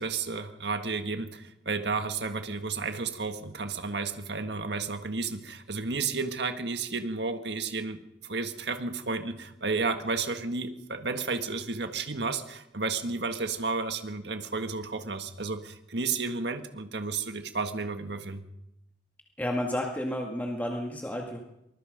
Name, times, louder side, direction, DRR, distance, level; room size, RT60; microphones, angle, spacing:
voice 1, 0.0-18.5, right 4 dB, 65° right, 8 dB, 1.7 m, -32 dB
voice 2, 19.4-21.4, left 1 dB, 10° left, 1 dB, 1.9 m, -31 dB
24.0 x 20.5 x 5.2 m, 0.85 s
head